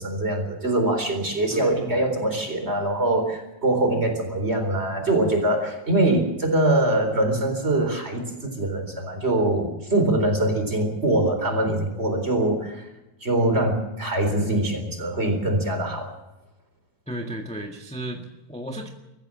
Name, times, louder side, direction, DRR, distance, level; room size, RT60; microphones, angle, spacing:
voice 1, 0.0-12.9 13.2-16.1, right 1 dB, 35° right, 5 dB, 4.4 m, -23 dB
voice 2, 1.5-2.1 17.1-18.9, right 1 dB, 5° left, 2 dB, 1.6 m, -35 dB
23.0 x 15.0 x 7.7 m, 0.98 s
omnidirectional pair, 2.0 m